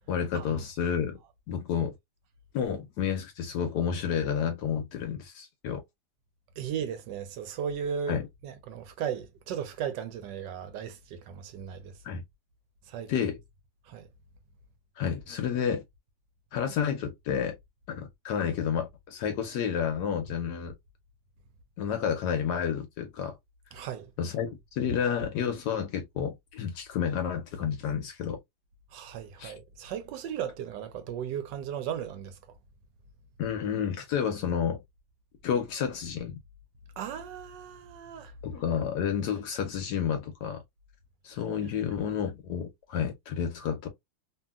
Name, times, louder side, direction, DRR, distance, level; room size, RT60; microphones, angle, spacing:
voice 1, 0.1-1.2 1.5-1.9 2.5-5.8 8.1-8.2 12.0-12.2 13.1-13.4 15.0-15.8 16.5-17.6 17.9-20.7 21.8-23.4 24.2-28.4 29.4-29.5 33.4-34.8 35.4-36.4 38.4-40.6 41.2-43.9, left 7 dB, 70° left, 1.0 m, -30 dB
voice 2, 6.6-11.9 12.9-13.1 13.9-14.1 23.7-24.1 28.9-32.4 37.0-38.3 41.4-41.5, right 8 dB, 75° right, 1.1 m, -36 dB
2.7 x 2.7 x 2.2 m
omnidirectional pair, 2.1 m